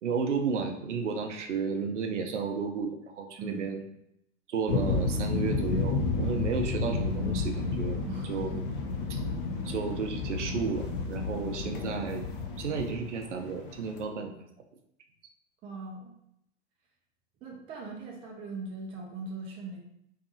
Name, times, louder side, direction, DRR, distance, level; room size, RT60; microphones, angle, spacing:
voice 1, 0.0-3.8 4.5-8.6 9.1-9.2 9.6-12.3 12.6-14.3, right 5 dB, 75° right, 5 dB, 0.6 m, -33 dB
voice 2, 3.4-3.7 8.1-8.6 15.6-16.1 17.4-19.8, right 3 dB, 15° right, -1 dB, 0.4 m, -40 dB
sound 1, 4.7-14.0, left 4 dB, 45° left, 0.5 m, -31 dB
2.6 x 2.3 x 2.6 m, 0.77 s
figure-of-eight pair, 100°, 36 cm